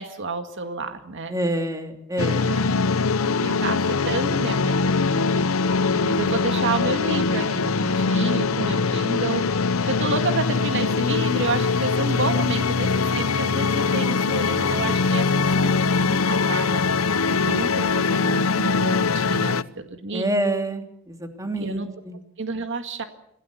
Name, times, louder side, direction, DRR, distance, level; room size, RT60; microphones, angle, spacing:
voice 1, 0.0-1.3 2.5-2.6 3.3-5.6 5.9-16.8 17.4-20.3 21.6-21.9 22.4-23.0, right 3 dB, 60° right, 7 dB, 1.9 m, -30 dB
voice 2, 1.3-2.5 20.1-22.2, right 1 dB, 15° right, 5 dB, 2.9 m, -27 dB
sound 1, 2.2-19.6, left 4 dB, 85° left, 0.8 m, -22 dB
26.0 x 17.0 x 8.3 m, 0.76 s
head